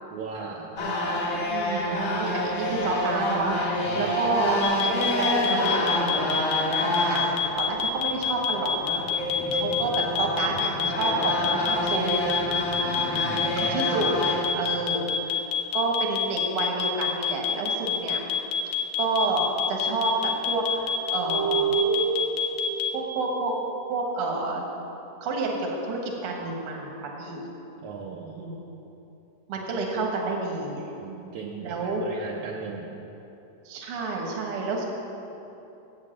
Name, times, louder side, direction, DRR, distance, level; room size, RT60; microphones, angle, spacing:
voice 1, 0.1-0.7 3.9-4.2 13.0-13.6 14.6-14.7 27.8-28.4 31.0-32.9, right 5 dB, 85° right, -2 dB, 1.6 m, -38 dB
sound 1, 0.8-7.6 7.9-8.0 8.3-14.4, left 1 dB, 50° left, 1.6 m, -27 dB
voice 2, 1.5-8.7 9.5-9.9 10.2-12.3 13.5-15.4 15.7-18.2 19.0-20.1 20.5-21.7 22.9-23.5 23.9-24.6 25.2-27.5 28.4-28.5 29.5-30.9 31.6-32.1 33.6-34.9, right 3 dB, 60° right, 0 dB, 1.5 m, -29 dB
sound 2, 4.6-22.9, left 8 dB, 85° left, 2.8 m, -27 dB
sound 3, 19.9-20.3 20.6-23.7, right 6 dB, 40° right, 1.2 m, -29 dB
8.4 x 7.3 x 7.6 m, 3.0 s
omnidirectional pair, 4.4 m